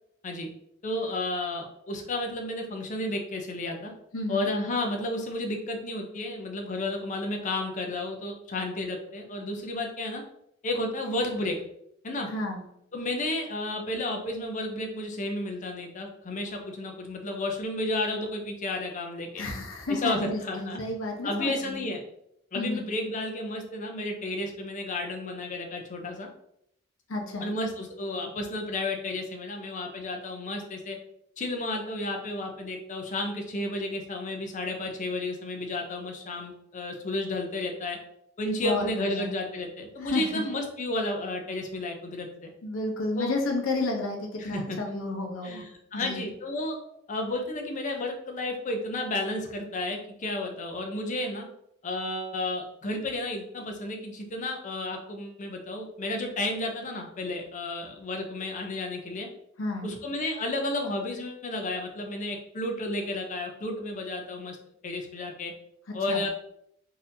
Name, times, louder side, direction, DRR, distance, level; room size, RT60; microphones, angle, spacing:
voice 1, 0.8-3.9 4.3-10.2 10.6-11.6 12.0-12.3 12.9-19.4 19.9-20.8 21.2-22.0 22.5-26.3 27.4-31.0 31.4-38.0 38.4-42.5 43.2-43.3 44.4-45.0 45.4-46.8 47.1-51.5 51.8-59.3 59.8-64.6 64.8-65.5 65.9-66.3, left 2 dB, 35° left, 2 dB, 0.5 m, -32 dB
voice 2, 4.1-4.5 12.3-12.6 19.4-21.8 22.5-22.8 27.1-27.5 38.6-39.3 40.0-40.4 42.6-45.7 45.9-46.3 59.6-59.9 66.1-66.3, left 2 dB, 70° left, 1 dB, 0.8 m, -31 dB
3.9 x 2.7 x 2.6 m, 0.76 s
head